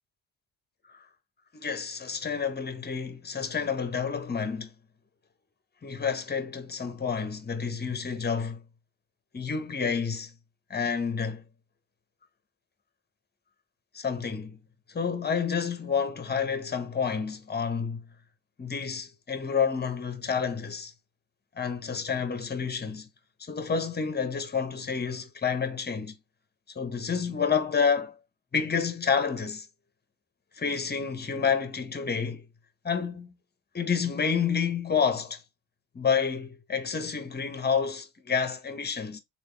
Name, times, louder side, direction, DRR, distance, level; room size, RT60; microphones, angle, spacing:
voice 1, 1.5-4.7 5.8-8.6 9.3-10.3 10.7-11.4 13.9-14.6 14.9-18.1 18.6-20.9 21.6-23.1 23.4-26.1 26.7-28.2 28.5-29.7 30.6-32.4 32.8-33.3 33.7-35.4 35.9-39.2, left 6 dB, 25° left, 1.0 m, -29 dB
3.4 x 2.6 x 3.3 m
supercardioid pair, 55°, 37 cm